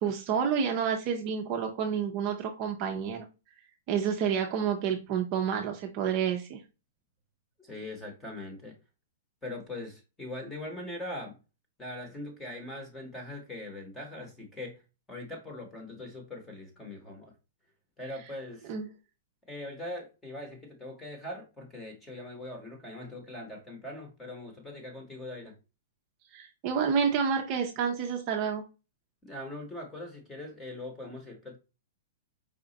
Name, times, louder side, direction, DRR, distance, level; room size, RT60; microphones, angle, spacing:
voice 1, 0.0-3.3 3.9-6.6 18.7-18.9 26.3-28.6, right 7 dB, 30° right, 0.6 m, -29 dB
voice 2, 7.6-8.7 9.4-11.3 11.8-14.8 15.1-17.3 18.0-18.7 19.5-25.5 29.2-31.6, left 1 dB, 5° left, 1.0 m, -41 dB
4.9 x 2.4 x 3.9 m
hypercardioid pair, 170°, 0 cm